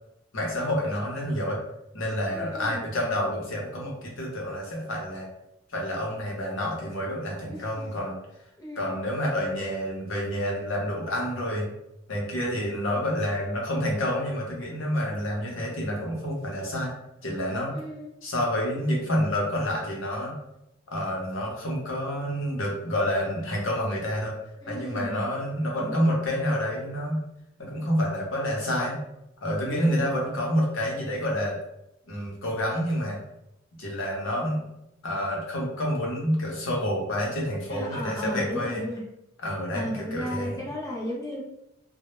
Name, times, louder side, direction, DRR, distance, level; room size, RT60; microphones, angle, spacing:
voice 1, 0.3-1.6 1.9-5.3 5.7-8.2 8.8-11.7 12.1-16.9 17.2-17.7 18.2-20.3 20.9-24.3 24.7-27.2 27.6-29.0 29.4-31.6 32.1-33.2 33.8-34.6 35.0-38.9 39.4-40.7, equal, 75° left, -2 dB, 0.7 m, -28 dB
voice 2, 2.3-2.8 7.5-7.9 8.6-9.0 17.7-18.1 24.6-25.2 25.8-26.1 29.7-30.1 37.7-39.0 39.7-41.4, equal, 20° left, -3 dB, 0.4 m, -35 dB
2.0 x 2.0 x 3.0 m, 0.84 s
head